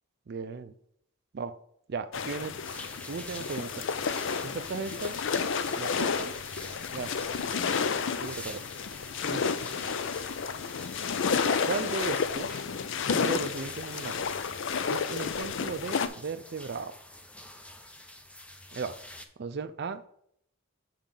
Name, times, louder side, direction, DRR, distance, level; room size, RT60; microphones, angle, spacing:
voice 1, 0.3-0.7 1.3-1.5 1.9-2.5 3.1-3.8 4.4-5.2 5.8-6.3 6.9-7.2 8.2-8.6 9.3-9.5 11.7-12.7 13.1-14.3 14.9-17.0 18.7-19.0 19.4-20.0, right 4 dB, 50° right, 10 dB, 0.4 m, -36 dB
issyk kul, 2.1-16.1, left 5 dB, 60° left, 0.4 m, -31 dB
sound 1, 2.6-19.2, left 1 dB, 5° left, 0.5 m, -47 dB
7.3 x 5.0 x 3.8 m, 0.68 s
head